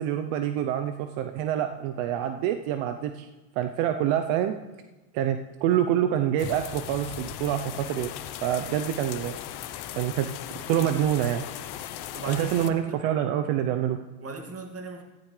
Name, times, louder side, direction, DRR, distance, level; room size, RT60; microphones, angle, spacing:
voice 1, 0.0-3.3 3.6-4.6 5.1-8.1 8.4-9.4 10.0-10.3 10.7-11.4 12.3-14.0, right 10 dB, 65° right, 8 dB, 0.9 m, -26 dB
sound 1, 6.4-12.7, left 11 dB, 50° left, 1.0 m, -38 dB
voice 2, 12.1-13.0 14.2-15.0, right 2 dB, 30° right, 4 dB, 2.2 m, -38 dB
14.5 x 14.5 x 3.3 m, 1.1 s
supercardioid pair, 100°, 50 cm